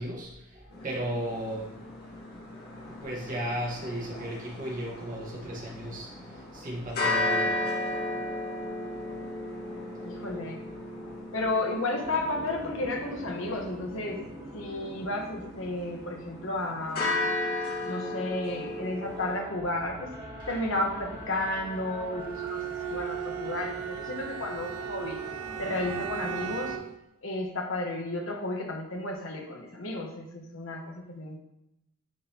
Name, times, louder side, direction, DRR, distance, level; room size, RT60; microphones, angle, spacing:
voice 1, 0.0-1.8 2.9-7.9 9.7-10.5 10.9-11.4, right 1 dB, 40° right, -3 dB, 1.4 m, -36 dB
sound 1, 0.7-19.4, left 2 dB, 45° left, 1.8 m, -35 dB
voice 2, 10.0-10.6 11.3-14.2 14.5-17.2 17.8-20.1 20.5-25.2 25.6-26.8 27.2-31.4, left 2 dB, 65° left, 1 dB, 1.2 m, -32 dB
sound 2, 12.0-26.8, right 1 dB, 20° right, 2.1 m, -44 dB
Bowed string instrument, 22.2-27.0, right 10 dB, 85° right, 0.3 m, -36 dB
9.2 x 3.9 x 2.9 m, 0.84 s
head